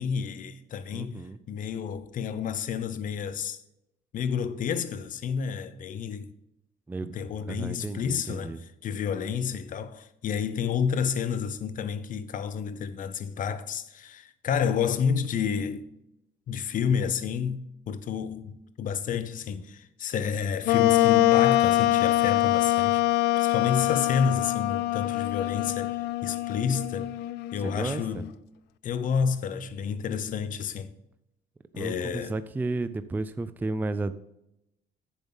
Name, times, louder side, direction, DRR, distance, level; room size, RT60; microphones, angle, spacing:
voice 1, 0.0-1.2 1.5-3.6 4.1-6.3 7.0-15.9 16.5-26.0 26.2-27.1 27.5-28.4 28.8-30.9 31.8-32.4, left 7 dB, 50° left, 0.8 m, -30 dB
voice 2, 0.9-1.4 6.9-7.1 7.4-8.6 27.6-28.2 31.7-34.1, right 2 dB, 10° right, 0.4 m, -33 dB
Wind instrument woodwind instrument, 20.6-28.1, left 15 dB, 80° left, 0.4 m, -24 dB
10.0 x 7.1 x 3.9 m
cardioid pair, 110°, 17 cm